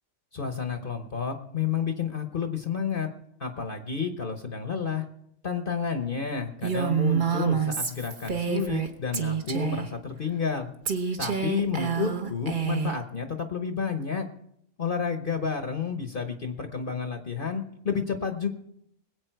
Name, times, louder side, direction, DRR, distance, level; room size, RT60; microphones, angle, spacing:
voice 1, 0.3-3.1 3.4-5.0 5.4-10.7 11.2-14.3 14.8-18.5, left 6 dB, 45° left, 6 dB, 1.1 m, -30 dB
Female speech woman speaking, 6.6-8.9 9.1-9.9 10.9-13.0, right 7 dB, 40° right, 1.1 m, -27 dB
21.0 x 8.4 x 4.6 m, 0.74 s
omnidirectional pair, 1.3 m